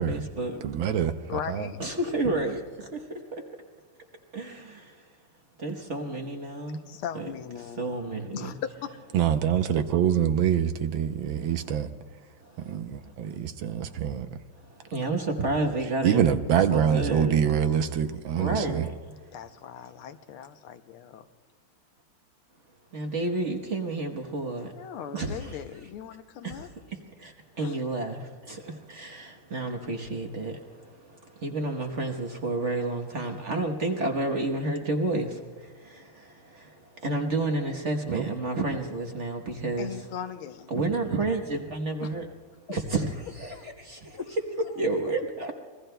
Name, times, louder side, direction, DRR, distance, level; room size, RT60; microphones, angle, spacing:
voice 1, 0.0-0.6 1.8-3.4 4.3-5.0 5.6-6.8 7.1-7.3 7.6-8.6 12.4-12.7 13.3-13.4 13.7-13.8 14.6-16.2 16.7-17.3 18.4-18.9 22.9-24.7 25.1-25.6 26.4-40.0 40.7-42.3 42.7-44.4 44.7-45.5, right 2 dB, 45° right, 1.1 m, -31 dB
voice 2, 0.6-1.7 9.1-11.9 12.7-14.3 16.0-18.9 38.1-38.3, right 9 dB, 70° right, 1.4 m, -25 dB
voice 3, 1.3-1.8 6.9-7.8 8.3-9.0 19.3-21.2 24.6-26.7 27.6-27.7 39.8-40.7 42.0-42.1 42.7-42.8 43.5-44.3, left 9 dB, 80° left, 1.6 m, -39 dB
27.0 x 21.0 x 2.2 m
omnidirectional pair, 2.4 m